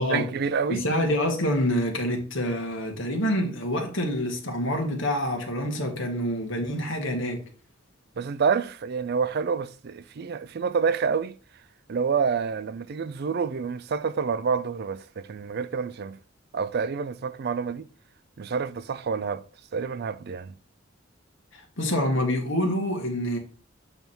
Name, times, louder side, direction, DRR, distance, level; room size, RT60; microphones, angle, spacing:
voice 1, 0.1-0.9 8.2-11.3 11.9-16.2 16.5-17.9 18.4-19.4 19.7-20.5, right 6 dB, 55° right, 0.4 m, -28 dB
voice 2, 0.7-7.4 21.5-23.4, equal, 70° left, 2.0 m, -27 dB
8.0 x 3.5 x 4.4 m
head